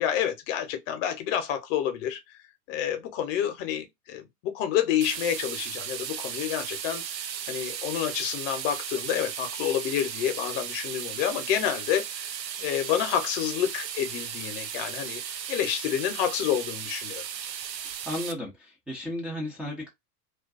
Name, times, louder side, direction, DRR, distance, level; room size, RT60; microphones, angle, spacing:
voice 1, 0.0-2.2 2.7-7.2 7.5-12.3 12.6-15.2 15.5-17.3, left 10 dB, 50° left, 0.8 m, -29 dB
sound 1, 5.0-18.3, right 9 dB, 85° right, 0.6 m, -36 dB
voice 2, 18.1-19.9, left 1 dB, ahead, 0.4 m, -34 dB
2.4 x 2.2 x 2.4 m
hypercardioid pair, 100°, 49 cm